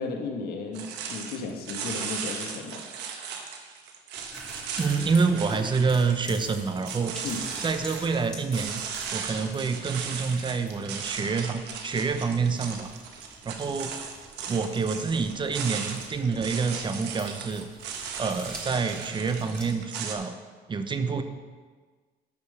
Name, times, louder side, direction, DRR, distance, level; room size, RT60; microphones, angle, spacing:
voice 1, 0.0-2.9 7.2-7.4, left 4 dB, 65° left, 2 dB, 1.7 m, -34 dB
sound 1, 0.7-20.1, right 6 dB, 85° right, 1.3 m, -37 dB
sound 2, 4.1-19.7, equal, 5° left, 2.4 m, -46 dB
voice 2, 4.8-7.1 7.6-8.8 9.1-12.9 13.4-13.9 14.5-17.7 18.2-20.4 20.7-21.2, right 5 dB, 30° right, 8 dB, 0.9 m, -27 dB
12.0 x 5.4 x 6.7 m, 1.5 s
cardioid pair, 110°, 17 cm